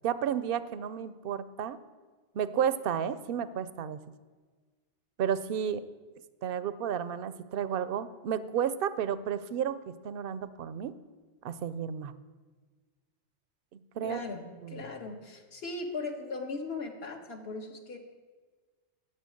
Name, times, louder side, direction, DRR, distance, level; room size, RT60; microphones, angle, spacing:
voice 1, 0.0-1.8 2.3-4.0 5.2-5.8 6.4-10.9 11.4-12.1 13.7-14.2 14.6-14.8, right 8 dB, 60° right, 14 dB, 0.7 m, -32 dB
voice 2, 14.0-18.0, left 3 dB, 60° left, 3 dB, 1.5 m, -38 dB
12.0 x 5.8 x 8.5 m, 1.4 s
omnidirectional pair, 1.2 m